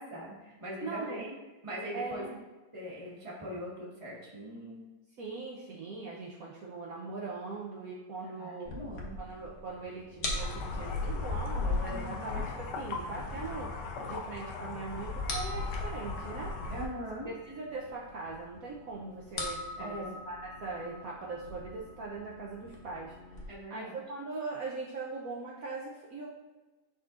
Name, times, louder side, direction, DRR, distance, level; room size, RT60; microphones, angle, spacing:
voice 1, 0.0-1.4 1.6-2.3 2.7-4.8 8.3-9.2 11.9-12.4 16.7-17.3 19.8-20.1 23.5-24.0, equal, 20° right, -6 dB, 1.5 m, -41 dB
voice 2, 0.8-1.2 1.9-2.4 5.2-8.7 9.2-16.5 17.3-26.3, right 3 dB, 65° right, -3 dB, 1.1 m, -41 dB
sound 1, 8.7-23.4, left 2 dB, 50° left, 1.2 m, -44 dB
sound 2, 10.4-16.9, left 3 dB, 80° left, 1.4 m, -36 dB
10.5 x 4.1 x 2.5 m, 1.2 s
omnidirectional pair, 1.8 m